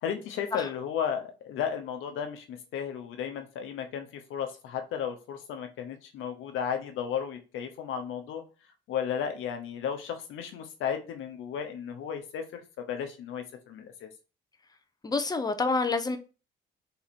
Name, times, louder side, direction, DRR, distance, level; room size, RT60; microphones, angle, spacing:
voice 1, 0.0-8.4 8.9-14.1, left 8 dB, 85° left, 1.0 m, -34 dB
voice 2, 15.0-16.2, left 3 dB, 20° left, 0.7 m, -27 dB
3.9 x 2.9 x 4.2 m
cardioid pair, 90°, 20 cm